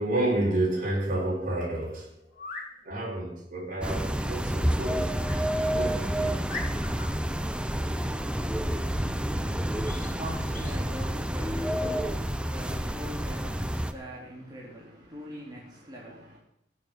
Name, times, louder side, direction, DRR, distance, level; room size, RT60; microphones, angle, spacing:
voice 1, 0.0-2.3 2.8-5.1 5.7-6.4, right 1 dB, 50° right, 5.2 m, -30 dB
sound 1, 2.3-2.7 5.2-5.4 6.0-6.1 6.5-7.1 9.8-10.1 10.5-10.8, left 3 dB, 50° left, 3.5 m, -40 dB
sound 2, 3.8-13.9, equal, 5° right, 0.7 m, -29 dB
voice 2, 9.4-16.4, equal, 25° right, 3.3 m, -43 dB
18.0 x 7.6 x 6.2 m
head